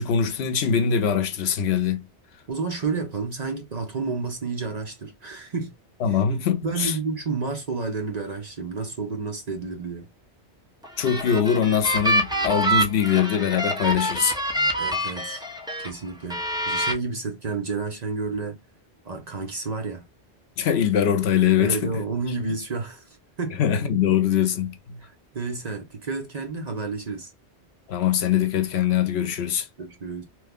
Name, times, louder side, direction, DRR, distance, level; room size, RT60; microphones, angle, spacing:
voice 1, 0.0-2.0 6.0-7.0 11.0-14.4 20.6-21.9 23.6-25.0 27.9-29.7, left 8 dB, 75° left, 0.9 m, -22 dB
voice 2, 2.5-5.7 6.1-6.2 6.6-10.1 14.8-15.4 15.8-18.6 19.0-20.0 21.6-23.6 25.0-27.3 29.8-30.2, right 4 dB, 45° right, 0.7 m, -30 dB
sound 1, 10.8-15.9 16.3-16.9, right 1 dB, 5° right, 0.6 m, -26 dB
3.0 x 2.2 x 3.5 m
omnidirectional pair, 1.1 m